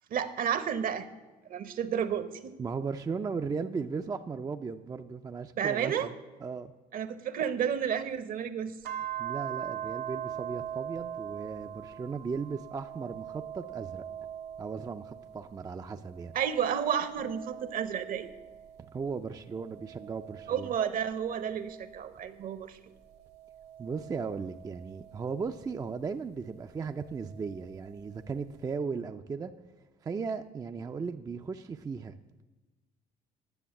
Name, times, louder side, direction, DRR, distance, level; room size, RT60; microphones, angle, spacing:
voice 1, 0.1-1.1 1.5-2.5 5.6-6.1 6.9-8.7 16.3-18.3 20.5-22.8, right 8 dB, 55° right, 12 dB, 0.9 m, -31 dB
voice 2, 2.6-6.1 6.4-6.7 9.2-14.1 14.6-16.3 18.8-20.7 23.8-29.5 30.0-32.1, right 5 dB, 20° right, 7 dB, 0.4 m, -36 dB
sound 1, 8.8-15.6 16.0-18.9 19.5-22.3 23.0-25.5 26.8-27.9, right 10 dB, 75° right, 1.3 m, -42 dB
10.0 x 7.0 x 7.0 m, 1.2 s
cardioid pair, 110°, 17 cm